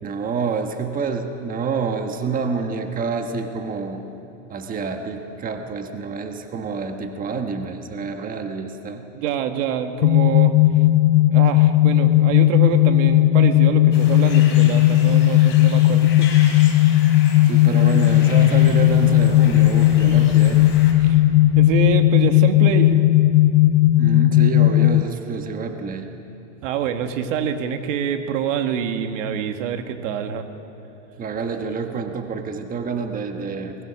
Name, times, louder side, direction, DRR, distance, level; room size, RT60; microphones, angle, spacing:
voice 1, 0.0-4.0 4.5-9.0 17.4-20.7 24.0-26.1 31.2-33.8, right 5 dB, 20° right, 5 dB, 1.3 m, -27 dB
voice 2, 9.1-10.5 11.3-16.3 21.0-21.2 21.6-23.0 26.6-30.5, right 8 dB, 75° right, 7 dB, 1.8 m, -26 dB
sound 1, 10.0-25.0, left 15 dB, 80° left, 0.6 m, -15 dB
sound 2, 13.9-20.9, left 4 dB, 30° left, 4.2 m, -38 dB
Explosion, 17.9-23.5, left 3 dB, 15° left, 5.4 m, -41 dB
22.5 x 20.5 x 6.2 m, 2.9 s
supercardioid pair, 135°, 39 cm